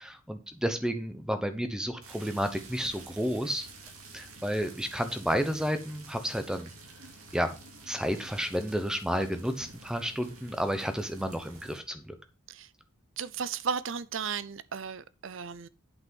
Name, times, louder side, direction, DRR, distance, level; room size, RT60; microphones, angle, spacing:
voice 1, 0.0-3.7 4.1-6.7 7.3-7.5 7.9-12.1, equal, 5° right, 0.9 m, -31 dB
sound 1, 2.0-11.8, right 3 dB, 85° right, 2.6 m, -50 dB
voice 2, 13.2-15.7, right 6 dB, 65° right, 0.6 m, -35 dB
8.3 x 6.0 x 5.3 m
head